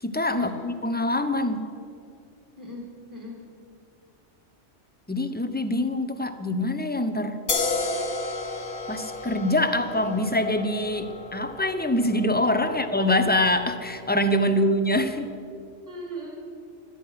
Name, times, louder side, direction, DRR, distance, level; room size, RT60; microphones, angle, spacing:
voice 1, 0.0-1.7 5.1-7.4 8.9-15.3, left 1 dB, 10° left, 9 dB, 0.6 m, -24 dB
voice 2, 2.6-3.4 12.6-12.8 14.5-14.6 15.9-16.4, right 1 dB, 15° right, -2 dB, 2.9 m, -39 dB
sound 1, 7.5-14.8, left 3 dB, 50° left, 1.4 m, -33 dB
17.0 x 13.0 x 5.8 m, 2.5 s
omnidirectional pair, 1.2 m